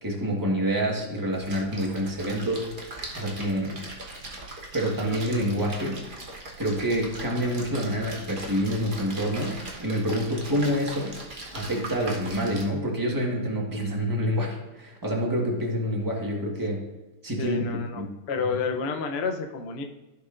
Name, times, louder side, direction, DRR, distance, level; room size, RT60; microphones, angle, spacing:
voice 1, 0.0-2.7 3.1-3.8 4.7-6.0 6.6-11.2 11.5-16.8 17.2-17.6 18.0-18.1, equal, 10° right, -1 dB, 1.3 m, -27 dB
Splash splatter, 1.3-12.6, right 2 dB, 30° right, 1.1 m, -40 dB
voice 2, 17.4-19.8, left 5 dB, 60° left, 4 dB, 0.6 m, -30 dB
14.5 x 5.9 x 2.6 m, 1.1 s
omnidirectional pair, 2.2 m